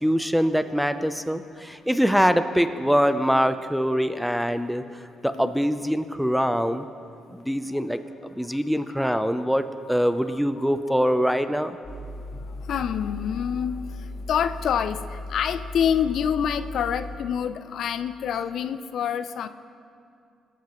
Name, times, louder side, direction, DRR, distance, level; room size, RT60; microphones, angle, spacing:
voice 1, 0.0-4.8 5.2-6.9 7.3-8.0 8.4-11.8, equal, ahead, 10 dB, 0.6 m, -23 dB
voice 2, 10.3-11.3 12.4-19.5, left 8 dB, 70° left, 11 dB, 0.5 m, -28 dB
sound 1, 11.8-17.2, left 2 dB, 40° left, 3.5 m, -37 dB
21.0 x 13.0 x 3.1 m, 2.4 s
cardioid pair, 90°, 0 cm